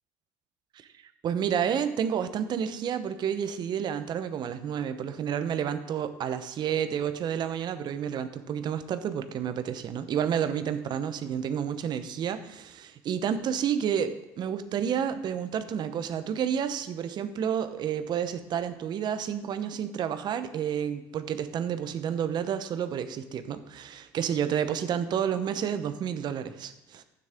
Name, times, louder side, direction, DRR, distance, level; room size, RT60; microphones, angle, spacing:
voice 1, 1.2-27.0, right 8 dB, 55° right, 10 dB, 0.9 m, -30 dB
12.0 x 9.3 x 3.6 m, 0.89 s
supercardioid pair, 80°, 9 cm